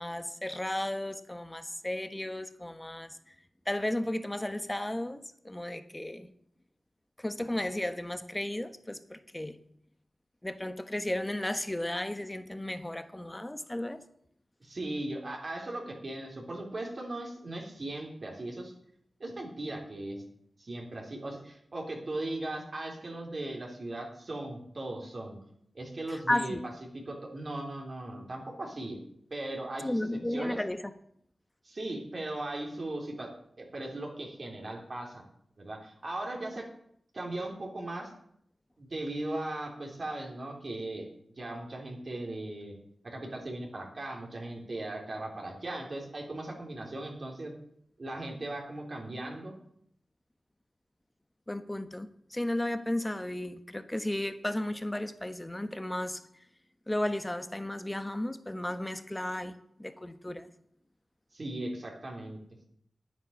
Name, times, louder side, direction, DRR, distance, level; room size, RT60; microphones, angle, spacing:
voice 1, 0.0-3.3 3.7-6.3 7.2-9.6 10.4-14.0 26.1-26.6 29.8-30.9 51.5-56.2 56.9-60.5, left 1 dB, 15° left, 10 dB, 1.3 m, -34 dB
voice 2, 14.6-18.7 19.2-20.2 20.6-25.4 25.7-26.7 27.1-29.0 29.3-30.6 31.6-33.3 33.6-35.2 35.6-36.6 37.1-38.1 38.8-41.1 41.4-42.7 43.0-47.5 48.0-49.5 61.3-62.4, right 1 dB, 50° right, 0 dB, 3.6 m, -38 dB
9.7 x 9.1 x 7.1 m, 0.69 s
cardioid pair, 50°, 0 cm